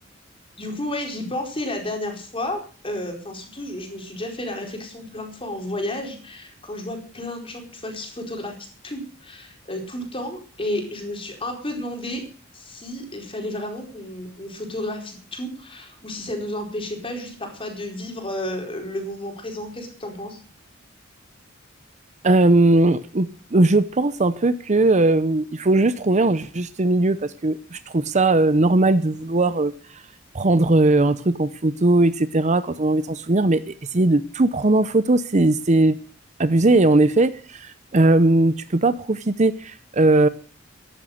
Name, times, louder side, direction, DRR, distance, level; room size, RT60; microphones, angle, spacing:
voice 1, 0.6-8.5 8.8-12.2 12.5-20.4, left 1 dB, 30° left, 3 dB, 4.5 m, -32 dB
voice 2, 22.2-29.7 30.3-36.0 36.4-40.3, right 2 dB, 35° right, 13 dB, 0.7 m, -19 dB
14.5 x 11.5 x 6.5 m, 0.41 s
head